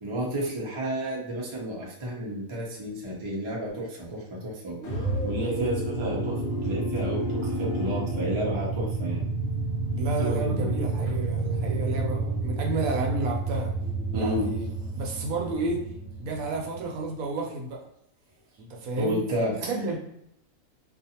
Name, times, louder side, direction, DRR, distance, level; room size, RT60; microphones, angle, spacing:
voice 1, 0.0-6.4 6.6-9.3 10.2-10.7 14.1-14.5 19.0-19.5, equal, 35° right, -4 dB, 0.5 m, -31 dB
sound 1, 3.7-3.9 4.7-10.1 10.5-14.5, right 2 dB, 5° right, 1.0 m, -43 dB
sound 2, 4.8-17.1, right 2 dB, 55° left, 1.0 m, -30 dB
voice 2, 9.9-13.7 14.1-14.6 14.9-15.8 16.2-17.8 18.6-19.2 19.6-20.0, right 2 dB, 85° right, 1 dB, 1.1 m, -31 dB
2.5 x 2.4 x 2.7 m, 0.79 s
omnidirectional pair, 1.5 m